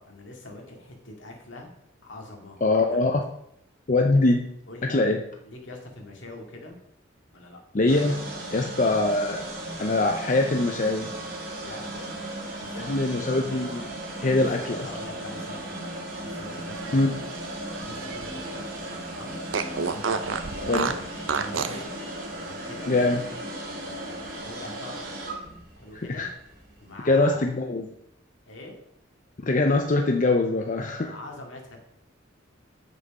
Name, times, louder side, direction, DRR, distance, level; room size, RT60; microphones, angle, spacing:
voice 1, 0.0-1.7 2.0-3.0 4.1-4.2 4.7-5.1 5.4-6.8 7.3-7.6 11.5-13.2 14.8-17.2 17.8-18.7 19.1-19.4 20.5-21.1 21.3-21.9 22.4-22.9 23.7-25.0 25.8-26.3 26.8-27.5 28.5-28.8 31.0-31.8, left 2 dB, 75° left, 1 dB, 2.2 m, -43 dB
voice 2, 2.6-3.2 3.9-4.5 4.9-5.2 7.7-8.2 8.5-9.5 9.8-11.1 12.7-13.9 14.2-14.9 16.9-17.1 19.7-20.0 20.7-20.9 22.9-23.2 25.9-26.3 27.0-27.9 29.4-31.1, left 2 dB, 40° left, 3 dB, 0.6 m, -23 dB
sound 1, 7.9-27.0, right 1 dB, 50° right, 2.6 m, -36 dB
Fart, 16.5-18.6 18.9-19.0 19.5-21.9, right 5 dB, 80° right, 0.7 m, -30 dB
7.6 x 6.5 x 5.4 m, 0.74 s
head